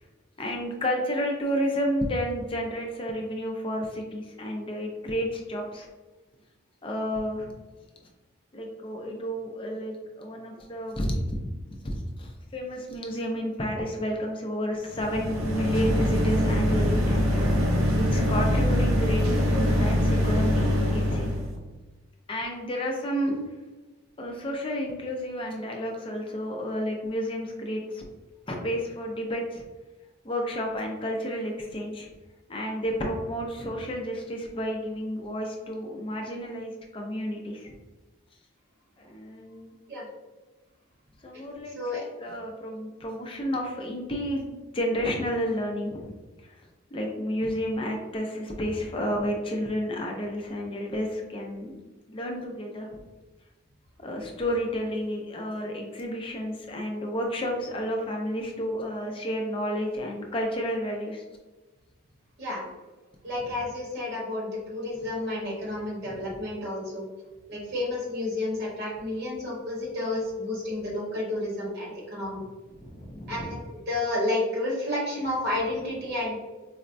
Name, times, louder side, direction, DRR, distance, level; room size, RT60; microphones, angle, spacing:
voice 1, 0.4-5.9 6.8-7.5 8.5-11.4 11.7-21.6 22.3-23.4 24.2-28.0 28.5-29.7 30.2-32.1 32.5-37.7 39.0-39.7 41.2-46.1 46.4-46.6 46.9-51.7 52.1-52.9 54.0-61.2 63.4-63.5 66.0-66.3 72.7-73.6, equal, 25° left, 1 dB, 0.4 m, -31 dB
sound 1, 14.9-21.5, equal, 75° right, 0.6 m, -24 dB
voice 2, 41.7-42.0 62.4-62.7 63.2-67.1 67.5-72.4 73.3-76.3, left 1 dB, 50° right, -4 dB, 1.1 m, -31 dB
4.1 x 2.1 x 2.5 m, 1.2 s
head